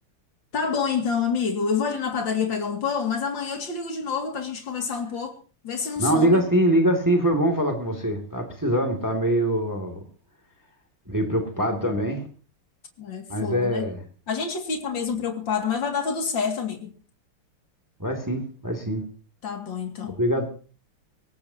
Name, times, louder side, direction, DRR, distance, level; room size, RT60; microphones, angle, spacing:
voice 1, 0.5-5.4 5.6-6.4 13.0-13.9 14.3-16.9 19.4-20.2, left 6 dB, 60° left, 3.0 m, -27 dB
voice 2, 6.0-10.0 11.1-12.2 13.3-14.0 18.0-19.0 20.2-20.5, right 1 dB, 10° right, 2.5 m, -23 dB
22.0 x 18.0 x 2.9 m
omnidirectional pair, 2.4 m